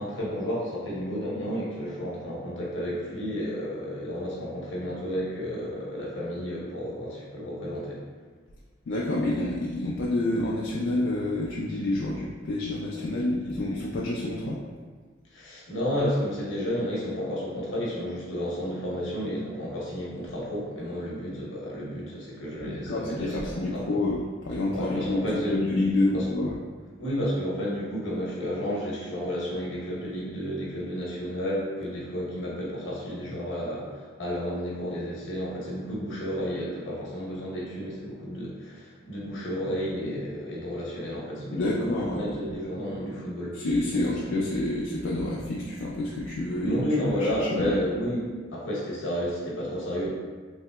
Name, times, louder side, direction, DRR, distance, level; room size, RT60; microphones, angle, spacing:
voice 1, 0.0-8.0 15.3-24.0 24.7-25.6 26.1-26.2 27.0-43.6 43.9-44.0 46.6-50.1, equal, 85° left, -5 dB, 0.9 m, -31 dB
voice 2, 8.9-14.6 22.6-26.6 41.5-42.4 43.5-46.8 47.1-47.8, left 2 dB, 70° left, -5 dB, 0.3 m, -28 dB
3.2 x 2.7 x 2.2 m, 1.5 s
head